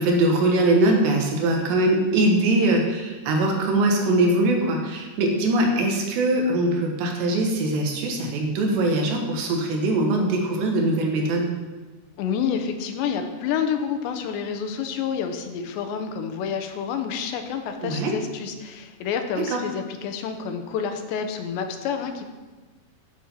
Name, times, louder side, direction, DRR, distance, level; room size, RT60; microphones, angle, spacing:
voice 1, 0.0-11.5 17.8-18.1 19.4-19.6, right 2 dB, 80° right, 1 dB, 3.8 m, -22 dB
voice 2, 12.2-22.3, left 7 dB, 85° left, 6 dB, 3.2 m, -28 dB
12.5 x 7.5 x 5.8 m, 1.3 s
omnidirectional pair, 4.9 m